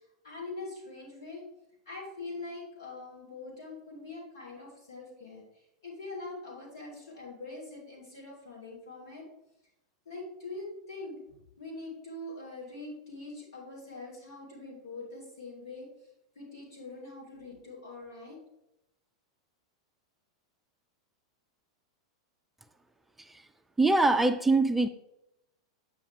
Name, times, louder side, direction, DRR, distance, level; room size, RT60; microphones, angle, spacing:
voice 1, 0.2-1.4 1.9-5.4 5.8-9.2 10.0-11.1 11.6-15.9 16.4-18.4, left 2 dB, 70° left, -2 dB, 2.8 m, -43 dB
voice 2, 23.8-24.9, right 2 dB, 5° right, 9 dB, 0.4 m, -23 dB
8.4 x 5.8 x 3.5 m, 0.84 s
figure-of-eight pair, 90°, 2 cm